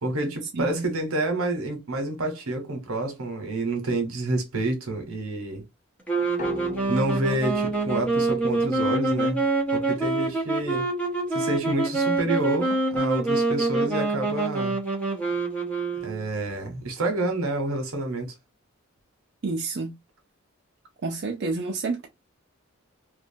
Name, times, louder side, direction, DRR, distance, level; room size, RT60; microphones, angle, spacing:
voice 1, 0.0-5.6 6.9-9.4 9.7-10.9 11.3-14.8 16.0-18.3, right 2 dB, 85° right, 1.0 m, -28 dB
voice 2, 0.5-0.9 19.4-19.9 21.0-22.1, right 3 dB, 55° right, 0.4 m, -29 dB
sound 1, 6.1-16.5, right 3 dB, 5° left, 0.8 m, -26 dB
sound 2, 6.4-9.9, left 3 dB, 35° left, 0.5 m, -40 dB
2.5 x 2.1 x 2.6 m
head